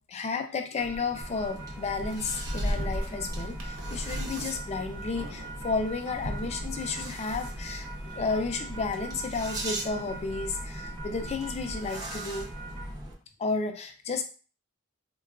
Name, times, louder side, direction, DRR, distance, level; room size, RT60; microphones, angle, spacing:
voice 1, 0.0-7.9 8.1-12.5 13.4-14.2, left 4 dB, 30° left, 6 dB, 0.3 m, -32 dB
sound 1, 0.8-12.9, right 1 dB, 60° right, 0.6 m, -38 dB
sound 2, 1.2-13.1, right 1 dB, 15° right, 0.6 m, -40 dB
3.6 x 2.2 x 2.3 m, 0.37 s
head